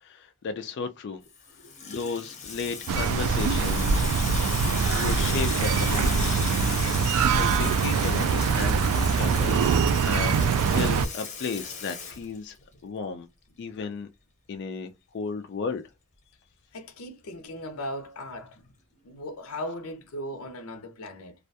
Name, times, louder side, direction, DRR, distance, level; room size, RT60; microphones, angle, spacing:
voice 1, 0.0-1.2 1.8-4.1 4.9-6.3 7.0-10.5 10.7-12.6 12.8-13.3 13.6-14.1 14.5-15.8, left 5 dB, 55° left, 0.3 m, -34 dB
Water tap faucet / Sink (filling or washing), 1.3-12.8, left 5 dB, 35° left, 0.7 m, -36 dB
voice 2, 1.6-2.1 16.7-18.7 19.0-21.3, left 1 dB, 90° left, 0.6 m, -38 dB
sound 1, 2.9-11.1, right 5 dB, 80° right, 0.3 m, -23 dB
2.3 x 2.2 x 2.6 m
head